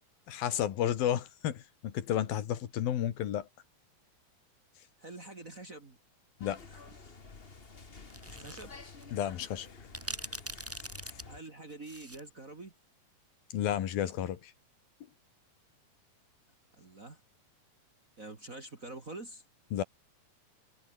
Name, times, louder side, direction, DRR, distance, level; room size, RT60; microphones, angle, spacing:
voice 1, 0.3-3.5 6.4-6.6 9.1-9.7 13.5-14.5 19.7-19.8, left 11 dB, 85° left, 3.7 m, -32 dB
voice 2, 5.0-6.0 6.7-7.1 8.3-8.7 11.2-12.7 16.8-17.2 18.2-19.4, right 2 dB, 30° right, 2.0 m, -46 dB
sound 1, 6.4-11.4, left 4 dB, 35° left, 0.9 m, -51 dB
sound 2, 8.1-8.6 9.0-9.1 9.9-12.3, right 1 dB, 5° right, 1.2 m, -42 dB
omnidirectional pair, 4.1 m